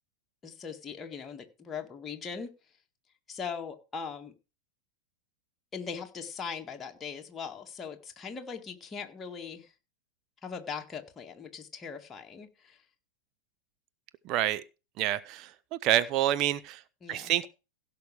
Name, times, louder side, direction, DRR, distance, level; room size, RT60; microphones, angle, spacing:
voice 1, 0.4-2.5 3.3-4.3 5.7-9.7 10.4-12.8 17.0-17.3, left 6 dB, 20° left, 1.9 m, -40 dB
voice 2, 14.3-14.6 15.0-15.5 15.8-16.8 17.1-17.5, right 13 dB, 40° right, 0.7 m, -27 dB
16.5 x 6.1 x 4.8 m
figure-of-eight pair, 90°, 0 cm